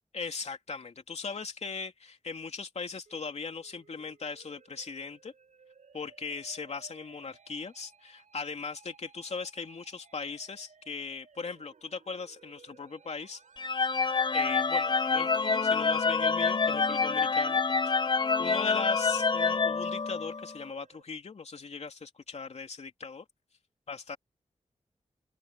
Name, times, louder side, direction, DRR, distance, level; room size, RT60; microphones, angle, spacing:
voice 1, 0.1-5.3 5.9-13.4 14.3-17.9 18.4-23.2 23.9-24.2, left 5 dB, 60° left, 3.0 m, -39 dB
Musical instrument, 3.1-21.0, right 5 dB, 80° right, 6.8 m, -59 dB
sound 1, 13.6-20.6, left 4 dB, 40° left, 0.9 m, -27 dB
open air
wide cardioid pair, 135°, 12 cm